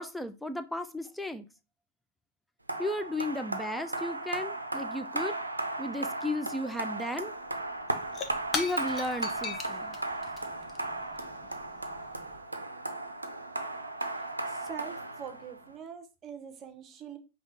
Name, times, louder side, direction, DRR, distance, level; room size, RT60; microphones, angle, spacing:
voice 1, 0.0-1.5 2.8-5.3 5.8-7.3 8.5-9.9, left 1 dB, 5° left, 10 dB, 0.5 m, -34 dB
sound 1, 2.7-15.7, right 2 dB, 85° right, 0.5 m, -36 dB
Shatter / Crushing, 7.7-12.4, left 4 dB, 25° left, 0.8 m, -40 dB
voice 2, 14.5-17.2, right 8 dB, 30° right, 7 dB, 0.8 m, -43 dB
5.3 x 2.9 x 3.3 m, 0.29 s
figure-of-eight pair, 90°, 0 cm